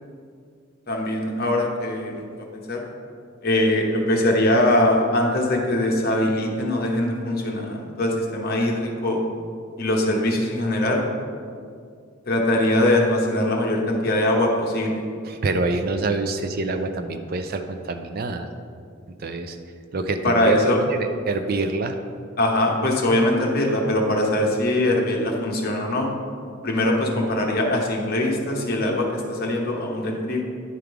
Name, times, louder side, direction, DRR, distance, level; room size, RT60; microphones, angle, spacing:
voice 1, 0.9-2.8 3.4-9.2 9.8-11.0 12.3-15.0 20.2-20.8 22.4-26.1 26.6-30.4, left 1 dB, 45° left, 0 dB, 1.0 m, -22 dB
voice 2, 15.3-18.5 19.2-19.6 19.9-20.6 20.9-22.0, right 3 dB, 45° right, 7 dB, 0.4 m, -26 dB
10.0 x 3.6 x 4.7 m, 2.3 s
head